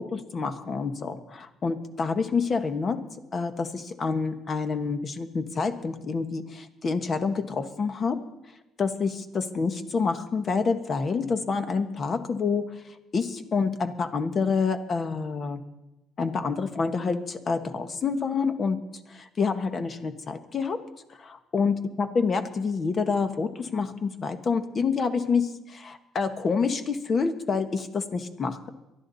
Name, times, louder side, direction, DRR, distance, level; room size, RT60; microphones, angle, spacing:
voice 1, 0.0-3.0 3.3-8.2 8.8-12.7 13.1-15.6 16.2-18.8 19.1-20.8 21.2-28.7, left 5 dB, 40° left, 8 dB, 1.5 m, -27 dB
23.0 x 12.5 x 4.2 m, 0.97 s
cardioid pair, 100°, 0 cm